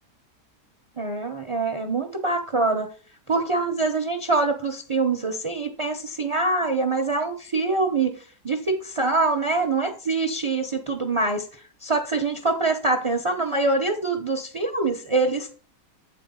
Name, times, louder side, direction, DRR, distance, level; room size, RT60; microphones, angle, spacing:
voice 1, 1.0-2.9 3.3-8.2 8.4-11.5 11.8-15.5, right 3 dB, 30° right, 5 dB, 0.6 m, -24 dB
8.4 x 4.6 x 5.4 m, 0.40 s
omnidirectional pair, 1.8 m